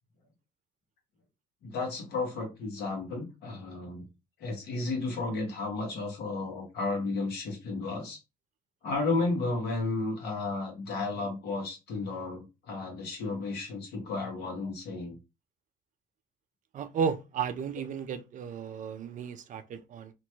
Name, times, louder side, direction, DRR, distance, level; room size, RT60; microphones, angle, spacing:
voice 1, 1.6-4.1 4.4-8.2 8.8-15.2, left 3 dB, 75° left, 1.3 m, -33 dB
voice 2, 16.7-20.1, right 6 dB, 50° right, 0.4 m, -34 dB
2.9 x 2.2 x 3.0 m
cardioid pair, 110°, 17 cm